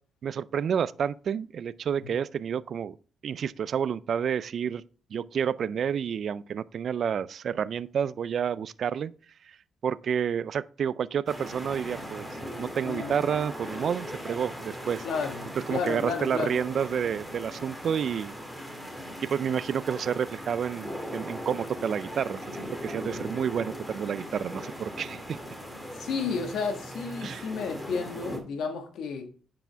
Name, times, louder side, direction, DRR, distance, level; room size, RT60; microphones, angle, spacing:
voice 1, 0.2-3.0 3.2-4.8 5.1-9.1 9.8-12.3 12.6-15.1 15.7-18.3 19.2-22.5 22.8-25.4 27.2-27.4, right 7 dB, 55° right, 0.4 m, -29 dB
sound 1, 11.3-28.4, equal, 5° left, 1.9 m, -39 dB
voice 2, 12.8-13.3 15.0-16.6 25.9-29.3, left 5 dB, 75° left, 1.5 m, -32 dB
9.1 x 4.9 x 3.4 m
cardioid pair, 90°, 0 cm